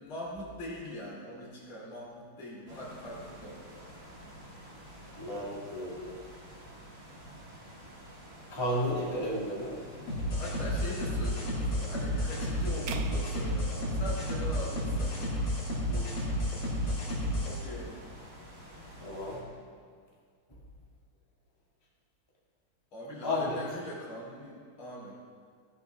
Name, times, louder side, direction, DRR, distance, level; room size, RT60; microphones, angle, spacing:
voice 1, 0.0-3.8 10.3-15.3 17.4-18.1 22.9-25.3, equal, 70° left, -5 dB, 3.7 m, -42 dB
sound 1, 2.7-19.4, equal, 40° right, 2.6 m, -49 dB
voice 2, 5.2-6.2 8.5-9.8 15.9-16.1 19.0-19.4 23.2-23.6, left 1 dB, 10° left, -4 dB, 1.7 m, -33 dB
sound 2, 10.1-17.6, equal, 45° left, 2.9 m, -31 dB
sound 3, 12.9-15.1, right 8 dB, 75° right, 1.6 m, -42 dB
15.5 x 11.0 x 3.5 m, 2.1 s
omnidirectional pair, 2.4 m